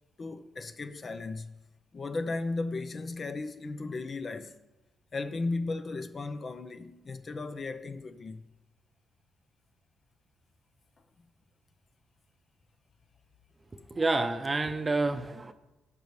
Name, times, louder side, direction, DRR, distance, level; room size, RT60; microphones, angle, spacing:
voice 1, 0.2-1.6 1.9-4.6 5.1-8.4, left 3 dB, 40° left, 0.8 m, -35 dB
voice 2, 13.9-15.5, right 3 dB, 25° right, 0.8 m, -28 dB
15.5 x 5.3 x 4.8 m
cardioid pair, 90°, 0 cm